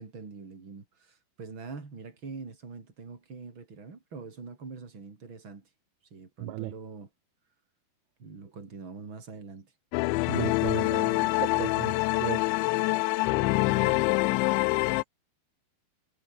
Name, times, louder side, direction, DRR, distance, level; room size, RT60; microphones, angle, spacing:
voice 1, 0.0-5.7 6.1-7.1 8.2-9.7 13.2-14.1, right 4 dB, 25° right, 4.5 m, -44 dB
voice 2, 6.4-6.7 10.3-12.4, right 21 dB, 80° right, 3.0 m, -35 dB
sound 1, 9.9-15.0, left 23 dB, 85° left, 2.7 m, -25 dB
omnidirectional pair, 5.5 m